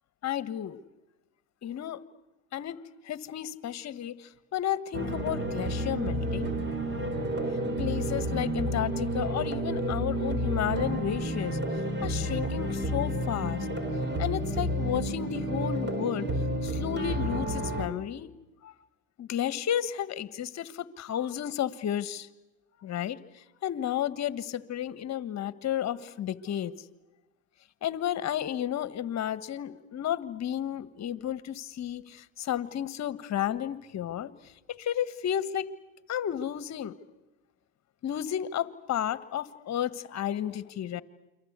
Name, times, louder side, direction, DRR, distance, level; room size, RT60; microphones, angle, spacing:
voice 1, 0.2-0.8 1.6-2.0 2.5-6.5 7.8-11.6 12.0-13.7 14.2-16.3 16.6-18.3 18.6-18.7 19.2-22.3 22.8-23.2 23.6-26.7 27.8-34.3 34.7-35.7 36.1-37.0 38.0-41.0, left 10 dB, 45° left, 15 dB, 1.5 m, -32 dB
sound 1, 4.9-17.9, right 1 dB, 30° right, 4.4 m, -30 dB
29.0 x 24.0 x 8.2 m, 1.0 s
supercardioid pair, 90°, 38 cm